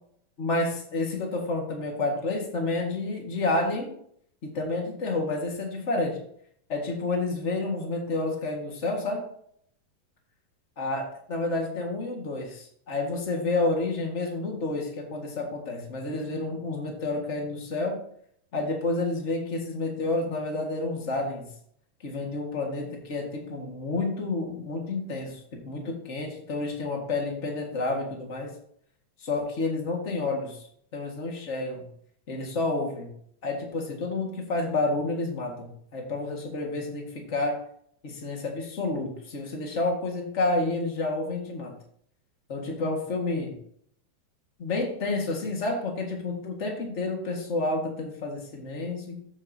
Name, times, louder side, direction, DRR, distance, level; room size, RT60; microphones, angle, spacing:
voice 1, 0.4-3.9 4.4-6.2 6.7-9.2 10.8-18.0 18.5-21.5 22.0-28.5 29.2-30.7 30.9-31.8 32.3-33.1 33.4-37.6 38.0-41.7 42.5-43.5 44.6-49.2, left 2 dB, 50° left, 1 dB, 0.8 m, -30 dB
14.5 x 6.7 x 2.7 m, 0.66 s
omnidirectional pair, 4.0 m